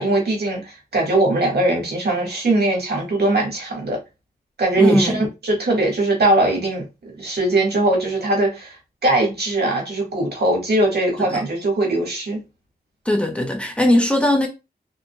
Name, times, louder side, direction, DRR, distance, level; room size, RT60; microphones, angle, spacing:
voice 1, 0.0-4.0 4.6-8.8 9.0-12.4, right 2 dB, 80° right, 1.8 m, -20 dB
voice 2, 4.8-5.2 11.2-11.4 13.0-14.5, left 1 dB, 5° left, 1.1 m, -19 dB
3.9 x 3.7 x 2.3 m
cardioid pair, 55°, 16 cm